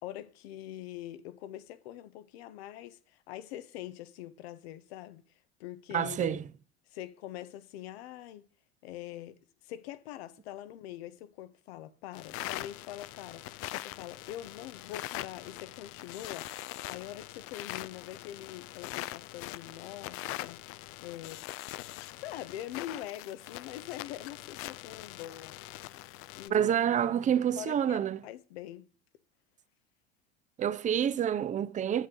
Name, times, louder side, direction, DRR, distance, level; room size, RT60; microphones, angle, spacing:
voice 1, 0.0-5.2 5.6-6.4 6.9-8.4 8.8-9.4 9.6-20.6 21.0-21.4 22.1-25.6 26.4-26.7 27.3-28.9, left 13 dB, 75° left, 0.9 m, -43 dB
voice 2, 5.9-6.4 26.5-28.2 30.6-32.1, right 9 dB, 25° right, 0.5 m, -28 dB
sound 1, 12.1-26.5, left 17 dB, 45° left, 0.4 m, -42 dB
8.2 x 8.1 x 3.8 m
hypercardioid pair, 95°, 31 cm